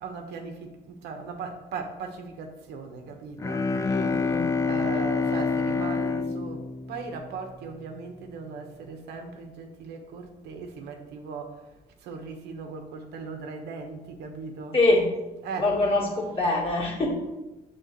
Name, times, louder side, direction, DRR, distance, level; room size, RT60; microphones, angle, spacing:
voice 1, 0.0-4.3 4.6-11.7 12.0-14.8 15.4-15.7 16.3-16.5, right 4 dB, 75° right, 4 dB, 1.0 m, -38 dB
Bowed string instrument, 3.4-7.7, left 4 dB, 20° left, 0.3 m, -27 dB
voice 2, 3.8-4.5 14.7-15.1 15.6-17.1, left 2 dB, 35° left, -4 dB, 2.2 m, -24 dB
7.9 x 3.7 x 4.0 m, 1.0 s
cardioid pair, 110°, 17 cm